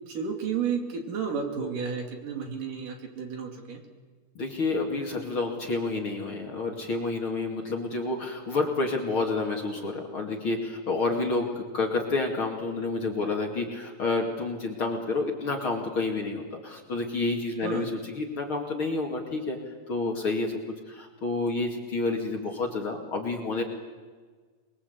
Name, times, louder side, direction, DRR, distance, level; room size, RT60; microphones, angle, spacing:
voice 1, 0.1-3.8 17.6-17.9, right 6 dB, 60° right, 3 dB, 4.1 m, -32 dB
voice 2, 4.3-19.6 19.9-20.6 20.9-23.6, left 3 dB, 40° left, 1 dB, 2.7 m, -29 dB
27.5 x 22.0 x 8.3 m, 1.5 s
omnidirectional pair, 4.3 m